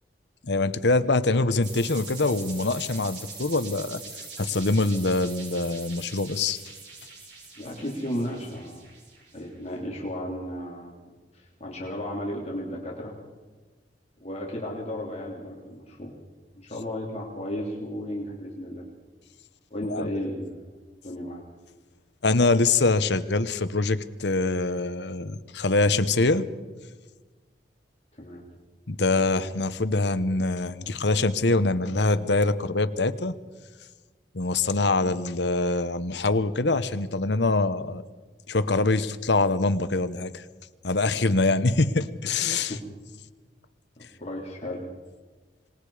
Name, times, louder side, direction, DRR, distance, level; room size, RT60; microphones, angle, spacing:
voice 1, 0.4-4.0 4.4-6.6 19.9-20.1 22.2-26.5 28.9-33.3 34.3-38.0 38.5-40.4 40.8-42.7, left 3 dB, 75° left, 12 dB, 1.1 m, -24 dB
sound 1, 1.6-9.4, right 4 dB, 80° right, 7.4 m, -43 dB
voice 2, 7.6-8.9 9.3-13.1 14.2-16.1 16.5-18.8 19.7-20.7 21.0-21.4 28.2-28.4 42.7-42.8 44.2-44.9, equal, 40° left, -3 dB, 3.5 m, -34 dB
26.0 x 20.5 x 5.0 m, 1.3 s
head